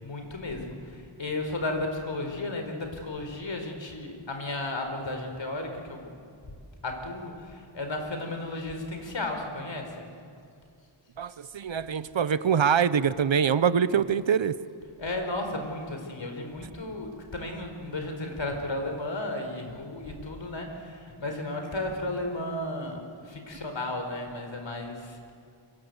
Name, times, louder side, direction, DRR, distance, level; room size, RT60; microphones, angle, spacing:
voice 1, 0.0-0.7 1.2-6.1 6.8-10.1 15.0-25.2, left 2 dB, 70° left, 4 dB, 4.7 m, -34 dB
voice 2, 11.2-14.6, right 7 dB, 70° right, 15 dB, 1.0 m, -24 dB
29.0 x 24.0 x 8.2 m, 2.4 s
wide cardioid pair, 90°, 47 cm